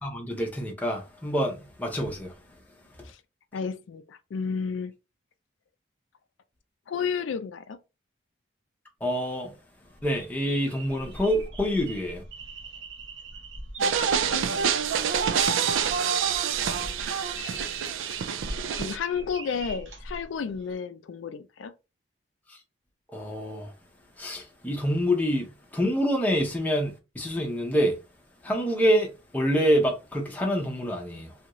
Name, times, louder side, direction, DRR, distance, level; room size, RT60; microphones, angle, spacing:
voice 1, 0.0-2.3 9.0-9.5 10.0-12.2 22.5-22.6 23.1-23.7 24.2-28.0 28.4-31.3, equal, 10° left, 0.6 m, -26 dB
voice 2, 3.5-4.9 6.9-7.8 13.8-14.7 18.7-21.7, left 6 dB, 80° left, 0.4 m, -32 dB
sound 1, 9.8-20.7, right 1 dB, 70° right, 0.8 m, -42 dB
sound 2, 13.8-19.0, right 7 dB, 85° right, 0.4 m, -26 dB
2.7 x 2.5 x 3.0 m
head